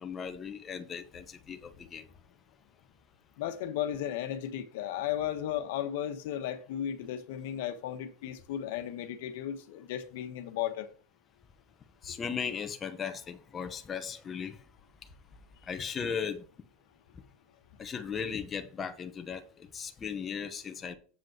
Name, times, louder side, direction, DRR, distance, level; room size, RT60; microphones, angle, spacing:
voice 1, 0.0-2.1 12.0-14.6 15.7-16.5 17.8-20.9, left 6 dB, 25° left, 0.9 m, -37 dB
voice 2, 3.4-10.9, left 11 dB, 75° left, 1.2 m, -35 dB
7.8 x 5.3 x 6.0 m
supercardioid pair, 140°, 0 cm